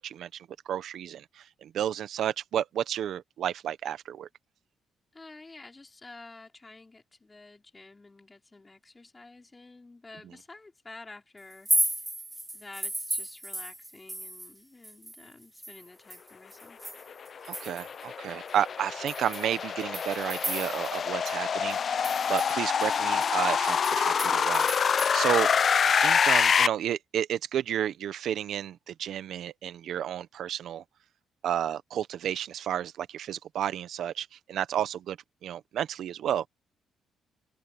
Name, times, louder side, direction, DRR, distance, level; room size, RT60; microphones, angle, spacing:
voice 1, 0.0-4.3 17.4-25.5 25.8-30.8 31.4-36.5, right 10 dB, 70° right, 1.1 m, -32 dB
voice 2, 5.1-11.7 12.5-16.8 24.2-24.4, left 3 dB, 20° left, 4.7 m, -50 dB
sound 1, 11.5-14.6 14.8-18.0 18.5-18.6 19.1-21.0 21.3-21.4 21.7-25.1, right 1 dB, 10° right, 0.8 m, -34 dB
sound 2, 17.1-26.7, left 7 dB, 50° left, 0.9 m, -26 dB
cardioid pair, 90°, 0 cm